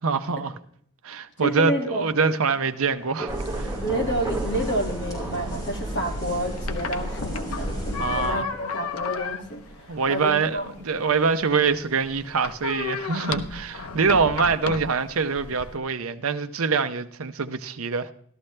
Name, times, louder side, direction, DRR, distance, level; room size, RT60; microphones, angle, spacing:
voice 1, 0.0-0.5 1.0-3.3 3.6-3.7 8.0-8.5 9.9-18.1, right 5 dB, 70° right, 0.7 m, -24 dB
voice 2, 1.4-2.0 3.8-10.6, right 1 dB, 55° left, 2.2 m, -29 dB
Thunder / Rain, 1.9-15.5, right 2 dB, 15° right, 1.3 m, -41 dB
sound 1, 3.3-8.3, equal, 20° left, 5.0 m, -32 dB
sound 2, 6.2-15.8, left 5 dB, 85° left, 0.8 m, -34 dB
13.0 x 13.0 x 3.3 m
head